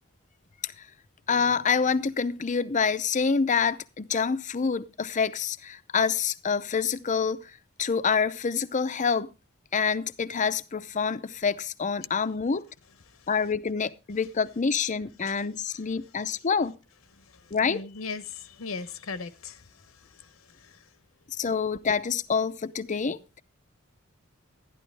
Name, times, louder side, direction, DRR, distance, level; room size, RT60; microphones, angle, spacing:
voice 1, 1.3-7.5 7.8-9.3 9.7-12.6 13.3-16.8 17.5-17.8 21.4-23.4, left 5 dB, 35° left, 0.6 m, -27 dB
voice 2, 17.1-20.9, left 4 dB, 80° left, 0.9 m, -40 dB
11.5 x 11.5 x 3.3 m
head